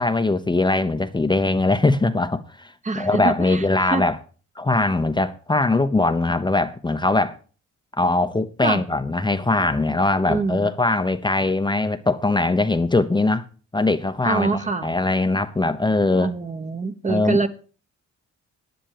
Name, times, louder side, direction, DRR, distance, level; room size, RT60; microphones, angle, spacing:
voice 1, 0.0-4.2 4.6-7.4 8.0-13.4 13.7-16.3 17.1-17.4, left 2 dB, 15° left, 0.9 m, -21 dB
voice 2, 2.8-4.0 8.6-8.8 10.3-10.7 14.2-14.9 16.1-17.5, right 4 dB, 25° right, 1.1 m, -25 dB
10.5 x 9.9 x 4.9 m
cardioid pair, 90°, 30 cm